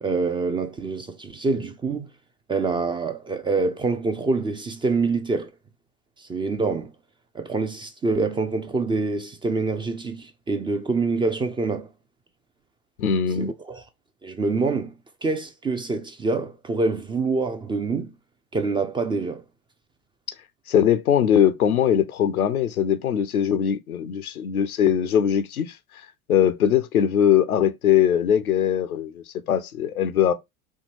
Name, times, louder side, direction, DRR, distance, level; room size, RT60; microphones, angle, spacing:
voice 1, 0.0-2.1 2.5-5.5 6.2-6.9 7.3-11.9 13.4-13.8 14.2-14.9 15.2-18.1 18.5-19.4, right 3 dB, 15° right, 0.3 m, -26 dB
voice 2, 13.0-13.5 20.7-25.8 26.3-30.3, left 9 dB, 90° left, 0.6 m, -21 dB
4.4 x 2.7 x 3.0 m
hypercardioid pair, 80°, 42 cm